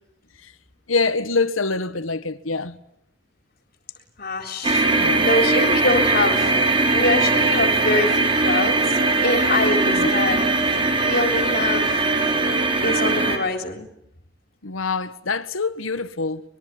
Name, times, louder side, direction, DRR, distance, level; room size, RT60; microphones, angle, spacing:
voice 1, 0.9-2.8 4.9-5.2 9.9-10.1 14.6-16.4, left 3 dB, 85° left, 1.5 m, -25 dB
voice 2, 4.2-6.5 6.9-8.8 9.2-10.5 11.0-12.1 12.8-13.9, left 2 dB, 50° left, 3.9 m, -24 dB
sound 1, 4.6-13.4, right 3 dB, 25° right, 4.1 m, -20 dB
24.5 x 22.0 x 9.5 m
head